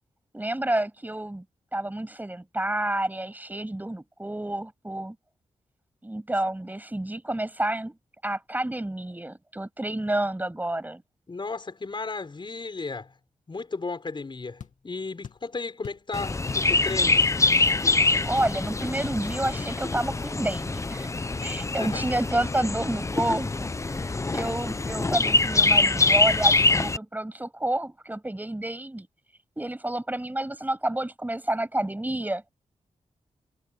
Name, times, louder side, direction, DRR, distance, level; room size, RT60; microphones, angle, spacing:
voice 1, 0.3-1.4 1.7-5.2 6.0-8.0 8.2-11.0 18.3-21.1 21.4-29.1 29.6-32.5, right 1 dB, 15° right, 8.0 m, -29 dB
voice 2, 11.3-13.1 13.5-17.3 21.8-22.1, left 3 dB, 40° left, 6.6 m, -34 dB
sound 1, 14.6-14.8 15.2-15.5 15.8-16.1 16.5-16.7 17.0-17.5 17.8-17.9 18.4-18.6 19.0-19.2, left 8 dB, 85° left, 2.3 m, -42 dB
Chirp tweet, 16.1-27.0, left 3 dB, 25° left, 0.7 m, -24 dB
wide cardioid pair, 95°, 12 cm